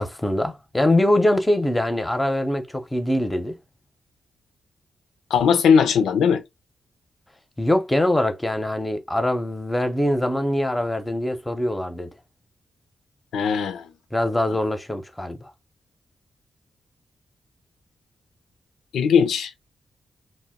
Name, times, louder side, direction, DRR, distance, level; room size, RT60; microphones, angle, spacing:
voice 1, 0.0-3.6 7.6-12.1 14.1-15.5, left 1 dB, 15° left, 0.6 m, -23 dB
voice 2, 5.3-6.4 13.3-13.9 14.5-14.6 18.9-19.5, left 6 dB, 85° left, 0.4 m, -19 dB
2.1 x 2.1 x 3.5 m
cardioid pair, 55°, 0 cm